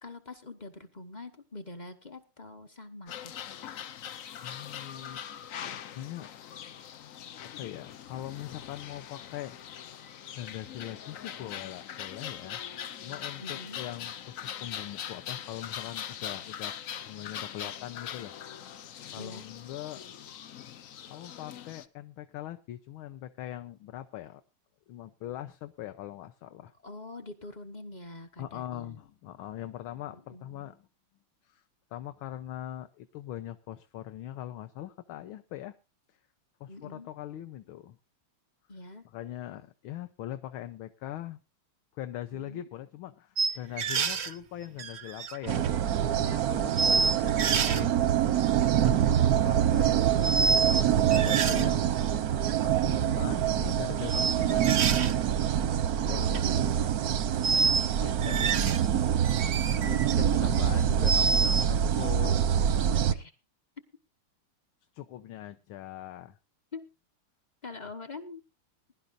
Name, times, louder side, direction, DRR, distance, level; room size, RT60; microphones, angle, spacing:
voice 1, 0.0-3.4 13.4-13.8 19.2-19.5 26.8-29.0 30.1-30.7 36.7-37.1 38.7-39.1 42.3-42.6 46.6-46.9 48.8-49.3 50.9-51.2 56.0-57.9 58.2-58.7 63.1-63.3 66.7-66.8 67.6-68.4, left 2 dB, 35° left, 9 dB, 0.7 m, -45 dB
sound 1, 3.1-21.9, left 9 dB, 90° left, 0.7 m, -42 dB
voice 2, 4.4-5.2 5.6-6.3 7.6-9.5 10.3-16.8 17.0-18.3 19.1-20.0 21.1-24.4 24.9-26.7 28.4-30.9 31.4-31.6 31.9-35.7 36.6-38.0 39.1-41.4 41.9-45.6 46.1-47.9 48.8-49.0 49.4-51.9 52.6-55.6 56.1-56.4 58.0-58.6 59.8-62.4 64.9-66.4, left 13 dB, 75° left, 8 dB, 1.6 m, -41 dB
sound 2, 43.4-44.3 44.8-45.8 46.3-46.4 46.8-47.8 48.6-48.9 50.2-50.8 51.1-51.7 52.5-52.6 54.1-55.1 56.1-56.4 57.4-57.9 58.2-58.9 59.2-60.1 60.6-61.6, right 4 dB, 90° right, 0.5 m, -28 dB
sound 3, 45.5-63.1, right 9 dB, 65° right, 0.9 m, -25 dB
21.5 x 11.5 x 2.5 m, 0.30 s
omnidirectional pair, 2.4 m